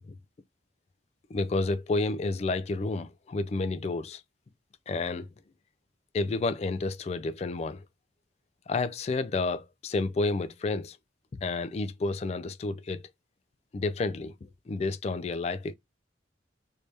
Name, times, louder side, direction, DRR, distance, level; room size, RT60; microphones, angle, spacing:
voice 1, 1.3-4.2 4.9-5.3 6.1-7.8 8.7-11.0 11.3-13.1 13.7-15.7, left 3 dB, 35° left, 0.3 m, -30 dB
3.3 x 2.7 x 3.2 m
head